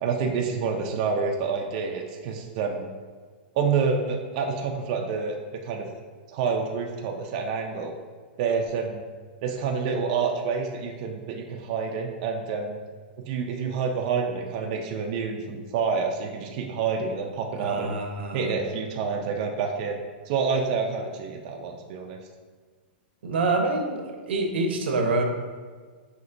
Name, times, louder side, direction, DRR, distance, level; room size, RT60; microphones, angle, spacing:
voice 1, 0.0-2.9 3.5-5.9 6.3-7.9 8.4-9.0 9.4-12.8 13.2-17.9 18.3-20.0 20.3-22.2, right 5 dB, 40° right, 1 dB, 0.4 m, -28 dB
voice 2, 17.6-18.5 23.2-25.2, right 3 dB, 85° right, 3 dB, 0.7 m, -26 dB
5.6 x 2.9 x 2.5 m, 1.5 s
supercardioid pair, 160°, 6 cm